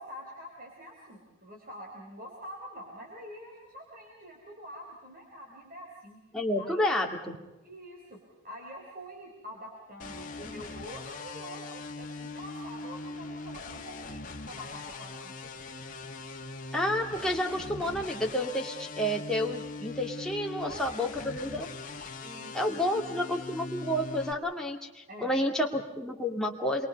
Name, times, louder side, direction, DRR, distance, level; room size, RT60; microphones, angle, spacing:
voice 1, 0.0-6.2 6.6-7.0 7.6-8.2 8.4-15.5 20.6-21.1 22.2-23.1 25.1-25.4, equal, 45° right, -1 dB, 4.4 m, -46 dB
voice 2, 6.3-7.4 16.7-21.7 22.5-26.9, left 1 dB, 5° left, -1 dB, 2.5 m, -30 dB
sound 1, 10.0-24.3, left 3 dB, 40° left, 2.0 m, -41 dB
28.0 x 23.0 x 5.4 m, 1.0 s
head